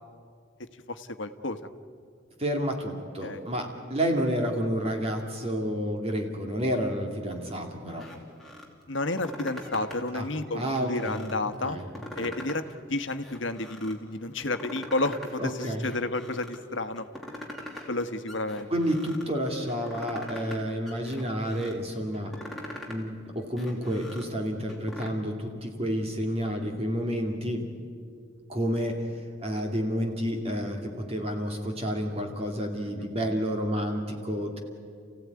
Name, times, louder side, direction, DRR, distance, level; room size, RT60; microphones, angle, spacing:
voice 1, 0.6-1.6 3.2-3.4 8.9-11.8 12.2-12.6 12.9-17.1 17.4-17.5 17.9-18.7 32.9-33.1, left 2 dB, 65° left, 10 dB, 1.3 m, -31 dB
voice 2, 2.4-8.0 10.1-10.3 10.5-11.2 11.6-11.8 12.2-12.3 15.4-15.9 18.7-22.3 22.8-27.6 28.5-29.1 29.4-34.6, equal, 30° right, 2 dB, 2.5 m, -30 dB
sound 1, 7.9-8.7 9.0-10.1 10.5-11.4 11.8-12.8 13.1-14.0 14.4-15.3 15.6-16.6 17.0-18.0 18.3-19.3 19.7-20.6 20.9-21.7 22.1-23.0 23.4-25.1, left 1 dB, ahead, 2.9 m, -42 dB
30.0 x 16.0 x 9.6 m, 2.2 s
head